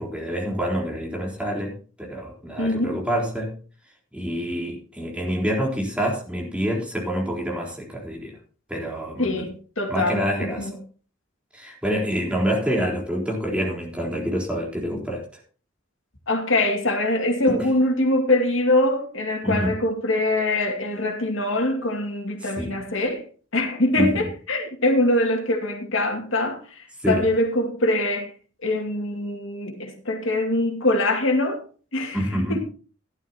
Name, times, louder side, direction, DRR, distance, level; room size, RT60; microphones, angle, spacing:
voice 1, 0.0-1.7 2.0-3.5 4.1-8.4 8.7-9.5 9.9-10.7 11.5-15.4 17.5-17.7 19.4-19.7 22.4-22.7 24.0-24.2 27.0-27.2 32.1-32.6, equal, 5° right, 3.9 m, -27 dB
voice 2, 2.6-3.0 9.2-10.2 10.6-10.7 16.3-23.2 23.5-26.6 27.1-28.3 28.6-31.6 31.9-32.2 32.5-32.6, left 1 dB, 80° left, 2.3 m, -23 dB
15.0 x 11.5 x 2.9 m
head